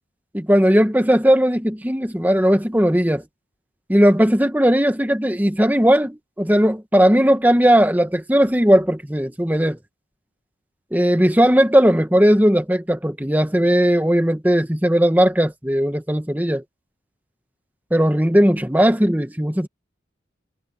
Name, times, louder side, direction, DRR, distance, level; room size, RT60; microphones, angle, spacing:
voice 1, 0.3-3.2 3.9-9.8 10.9-16.6 17.9-19.7, equal, 10° right, 1.2 m, -17 dB
head